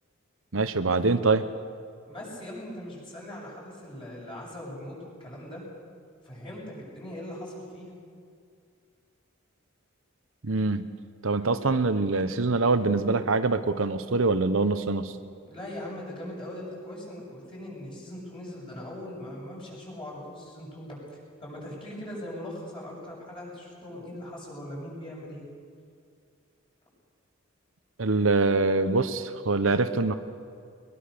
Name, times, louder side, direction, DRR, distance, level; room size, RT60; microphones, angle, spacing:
voice 1, 0.5-1.4 10.4-10.9 11.2-15.1 28.0-30.1, right 3 dB, 70° right, 10 dB, 1.0 m, -24 dB
voice 2, 2.1-5.7 6.2-7.9 15.4-21.0 21.4-25.5, left 1 dB, 25° left, -4 dB, 7.6 m, -40 dB
21.5 x 21.5 x 6.8 m, 2.3 s
head